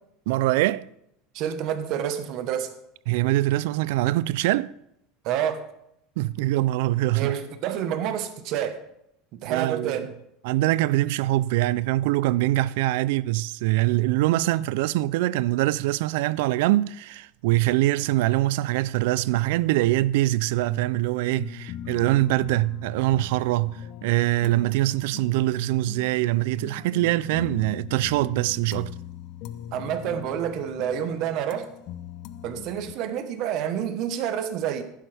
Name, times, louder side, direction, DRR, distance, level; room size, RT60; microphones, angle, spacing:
voice 1, 0.3-0.9 3.1-4.7 6.2-7.3 9.5-10.1 10.4-28.9, right 17 dB, 75° right, 0.3 m, -23 dB
voice 2, 1.3-2.7 5.2-5.6 7.1-8.8 9.3-10.1 29.7-31.7 32.4-34.8, right 9 dB, 55° right, 1.1 m, -28 dB
sound 1, 20.5-32.9, left 10 dB, 55° left, 0.5 m, -41 dB
11.5 x 10.0 x 3.4 m
supercardioid pair, 140°, 0 cm